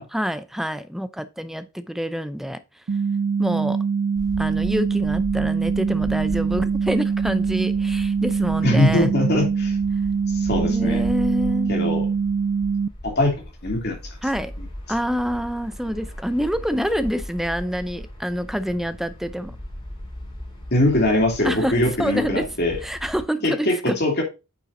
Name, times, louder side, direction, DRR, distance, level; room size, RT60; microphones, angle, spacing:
voice 1, 0.0-2.6 3.4-3.8 4.4-9.1 10.6-11.8 14.2-14.5 14.9-19.6 21.4-22.5 22.8-24.0, equal, ahead, 0.6 m, -27 dB
sound 1, 2.9-12.9, right 5 dB, 50° right, 0.4 m, -23 dB
sound 2, 4.2-23.2, equal, 20° left, 3.6 m, -37 dB
voice 2, 8.6-9.8 10.3-11.1 11.7-12.1 13.0-13.3 13.6-13.9 14.6-14.7 20.7-22.8 23.4-24.2, left 1 dB, 45° left, 2.9 m, -21 dB
9.3 x 6.8 x 2.7 m
head